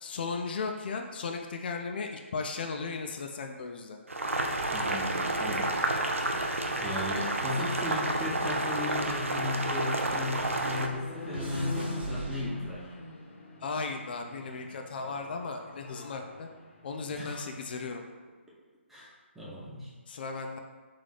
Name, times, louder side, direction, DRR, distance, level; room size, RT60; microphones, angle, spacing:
voice 1, 0.0-4.0 13.6-16.5 16.8-18.0 20.1-20.6, left 4 dB, 50° left, 4 dB, 0.4 m, -36 dB
Boiling, 4.1-10.9, right 1 dB, 85° right, 0.5 m, -30 dB
sound 1, 4.6-7.1 7.4-10.0 10.3-13.1 13.8-14.2, right 3 dB, 55° right, 0.8 m, -44 dB
voice 2, 4.7-5.6 6.8-12.9 17.1-17.4 18.9-19.1 19.3-19.9, left 2 dB, ahead, -8 dB, 0.8 m, -35 dB
sound 2, 8.2-17.5, left 2 dB, 75° left, 0.9 m, -44 dB
3.3 x 2.7 x 3.9 m, 1.4 s
figure-of-eight pair, 140°, 7 cm